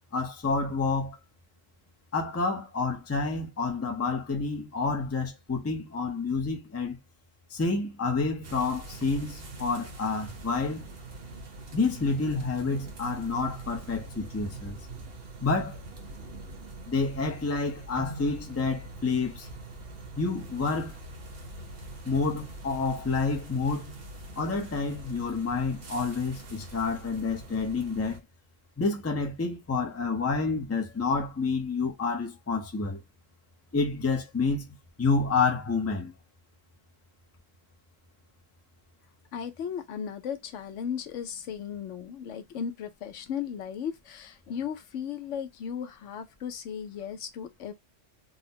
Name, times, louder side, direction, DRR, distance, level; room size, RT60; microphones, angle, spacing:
voice 1, 0.1-1.2 2.1-7.0 7.5-10.9 11.7-14.9 15.4-15.8 16.9-19.5 20.2-21.0 22.0-23.9 24.4-28.2 28.8-33.0 33.7-36.1, left 4 dB, 15° left, 0.5 m, -29 dB
sound 1, 8.4-28.2, right 2 dB, 55° right, 1.1 m, -43 dB
voice 2, 39.3-47.7, left 8 dB, 75° left, 1.0 m, -36 dB
3.9 x 2.1 x 2.6 m
omnidirectional pair, 1.3 m